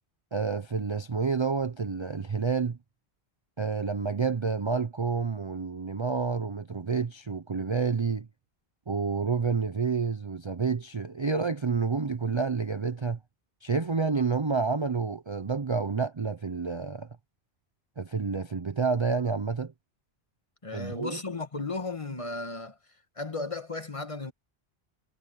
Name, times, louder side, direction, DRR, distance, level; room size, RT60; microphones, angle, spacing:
voice 1, 0.3-2.8 3.6-8.3 8.9-13.2 13.6-17.1 18.0-19.7 20.7-21.2, right 5 dB, 30° right, 0.6 m, -29 dB
voice 2, 20.6-22.8 23.1-24.3, left 3 dB, 30° left, 1.4 m, -35 dB
omnidirectional pair, 1.1 m